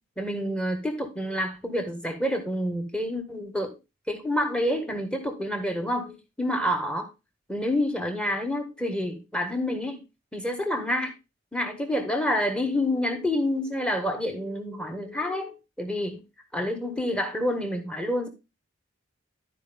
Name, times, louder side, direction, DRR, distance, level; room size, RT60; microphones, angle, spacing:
voice 1, 0.2-3.7 4.1-7.1 7.5-10.0 10.3-11.1 11.5-16.2 16.5-18.3, left 1 dB, 5° left, 1.5 m, -28 dB
12.5 x 5.0 x 3.6 m
head